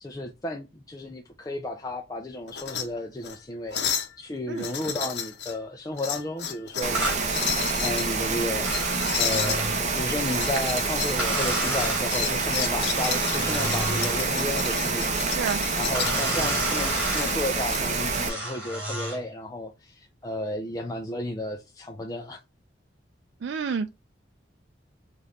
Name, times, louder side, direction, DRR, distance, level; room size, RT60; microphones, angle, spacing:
voice 1, 0.0-3.8 4.2-7.0 7.8-15.2 15.7-22.4, left 1 dB, 20° left, 0.4 m, -33 dB
sound 1, 2.5-2.8 3.2-3.4 3.7-4.1 4.6-5.5 6.0-6.9 7.3-8.1 8.7-9.6 10.3-11.2 11.5-16.2 17.1-17.8, left 8 dB, 70° left, 0.8 m, -32 dB
Rain, 6.8-18.3, right 3 dB, 40° right, 0.8 m, -27 dB
sound 2, 6.9-7.2 8.6-9.8 11.2-12.1 12.9-14.3 15.9-17.4 18.3-19.2, right 1 dB, 10° right, 2.2 m, -31 dB
voice 2, 23.4-23.9, right 6 dB, 80° right, 0.4 m, -29 dB
5.1 x 2.5 x 4.1 m
head